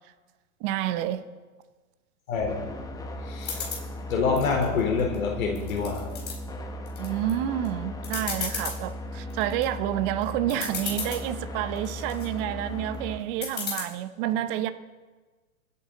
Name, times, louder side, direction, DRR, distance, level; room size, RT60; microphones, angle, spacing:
voice 1, 0.6-1.2 7.0-14.7, right 12 dB, 40° right, 11 dB, 1.0 m, -29 dB
voice 2, 2.3-2.7 3.3-3.6 4.1-6.1, left 5 dB, 65° left, 1 dB, 3.8 m, -26 dB
sound 1, 2.4-13.2, left 1 dB, 10° left, 1.2 m, -37 dB
sound 2, 3.4-3.8 4.4-5.1 5.5-6.3 6.9-7.3 7.6-7.7 8.0-8.8 9.3-9.6 10.2-10.3 10.5-11.2 11.8-12.3 13.4-13.8, left 6 dB, 25° left, 3.9 m, -34 dB
25.5 x 8.6 x 4.0 m, 1.3 s
hypercardioid pair, 115°, 43 cm